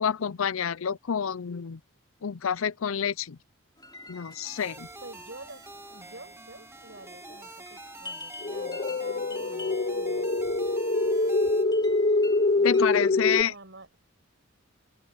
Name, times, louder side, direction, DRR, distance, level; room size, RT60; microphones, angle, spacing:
voice 1, 0.0-1.8 2.2-3.4 4.1-4.9 12.6-13.5, left 7 dB, 70° left, 0.5 m, -28 dB
sound 1, 3.8-13.1, left 2 dB, 20° left, 3.6 m, -48 dB
sound 2, 4.4-11.6, right 2 dB, 10° right, 2.3 m, -46 dB
voice 2, 5.0-10.3 12.6-14.0, right 2 dB, 55° right, 7.1 m, -49 dB
sound 3, 8.4-13.4, left 2 dB, 40° left, 0.9 m, -25 dB
open air
head